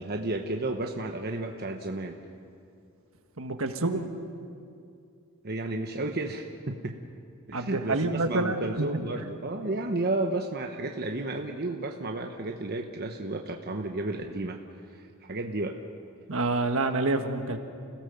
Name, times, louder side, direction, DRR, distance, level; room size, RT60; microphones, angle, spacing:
voice 1, 0.0-2.2 5.4-7.0 7.5-14.6 14.9-15.8, right 2 dB, 45° right, 2 dB, 1.1 m, -32 dB
voice 2, 3.4-4.1 7.5-8.9 16.3-17.6, right 2 dB, 65° right, 6 dB, 1.5 m, -27 dB
29.5 x 17.0 x 7.0 m, 2.5 s
head